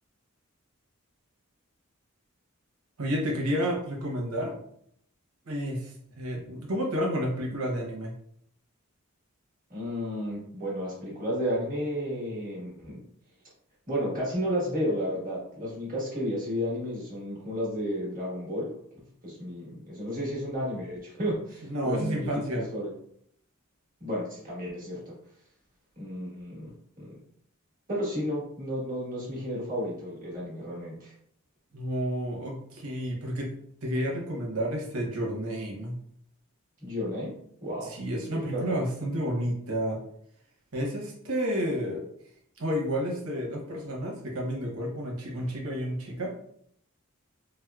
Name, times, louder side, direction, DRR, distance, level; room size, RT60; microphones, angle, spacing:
voice 1, 3.0-4.5 5.5-8.1 21.6-22.7 31.7-33.5 33.8-36.0 37.8-40.0 40.7-42.0 42.6-46.3, equal, 85° right, -1 dB, 0.8 m, -30 dB
voice 2, 9.7-13.0 13.9-18.7 19.2-22.3 22.7-22.9 24.0-25.1 26.0-26.7 27.0-27.1 27.9-31.1 36.8-37.3 37.6-37.9 38.3-38.8, equal, 40° right, -6 dB, 1.3 m, -32 dB
4.4 x 2.0 x 2.3 m, 0.69 s
head